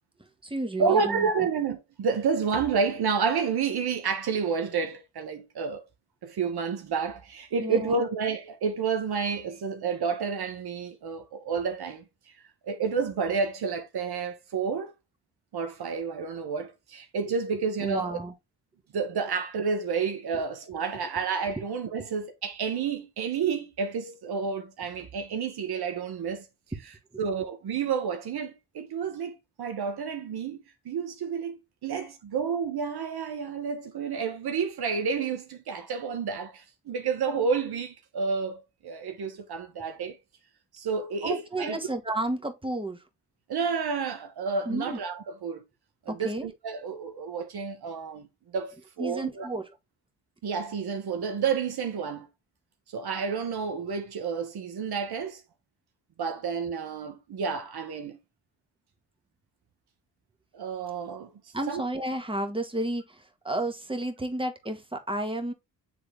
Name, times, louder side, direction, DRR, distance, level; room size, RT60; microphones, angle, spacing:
voice 1, 0.2-1.3 7.6-8.0 17.8-18.3 20.3-20.4 27.1-27.3 41.2-43.1 44.7-45.0 46.1-46.5 49.0-49.8 61.5-65.5, right 1 dB, 10° right, 1.8 m, -32 dB
voice 2, 0.8-5.8 6.2-14.9 15.5-18.2 18.9-26.5 27.2-30.6 30.8-40.2 40.7-41.8 43.5-45.6 46.0-48.3 48.5-49.5 50.4-52.3 52.9-55.4 56.2-58.2 60.5-61.3 61.7-61.8, right 5 dB, 60° right, 1.2 m, -30 dB
7.9 x 3.5 x 3.5 m
hypercardioid pair, 40°, 42 cm